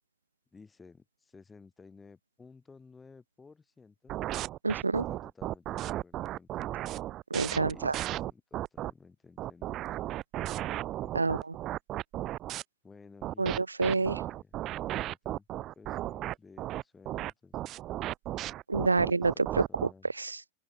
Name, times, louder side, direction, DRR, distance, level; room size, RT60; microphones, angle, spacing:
voice 1, 0.5-4.1 5.1-6.8 7.7-10.0 11.0-11.4 12.8-13.6 13.9-17.8 18.8-20.1, left 4 dB, 15° left, 6.1 m, -55 dB
sound 1, 4.1-8.9 9.4-12.6 13.2-19.9, right 14 dB, 35° right, 0.5 m, -35 dB
voice 2, 4.6-5.0 7.3-7.9 11.1-11.4 13.4-14.2 18.7-19.3 20.2-20.5, right 3 dB, 80° right, 0.6 m, -28 dB
open air
figure-of-eight pair, 90°, 0 cm